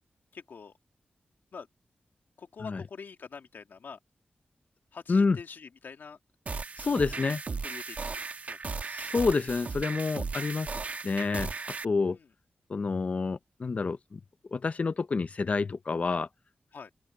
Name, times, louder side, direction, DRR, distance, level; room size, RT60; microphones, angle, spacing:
voice 1, 0.3-0.7 1.5-1.7 2.4-4.0 4.9-6.2 6.9-7.2 7.6-8.2 8.4-8.6 12.0-12.3 16.7-16.9, left 5 dB, 75° left, 2.2 m, -45 dB
sound 1, 6.5-11.8, right 4 dB, 50° right, 1.2 m, -36 dB
voice 2, 6.8-7.4 8.9-10.7 11.0-11.5 11.8-12.2 12.7-14.2 14.5-16.3, left 4 dB, 40° left, 0.5 m, -28 dB
open air
wide cardioid pair, 155°, 3 cm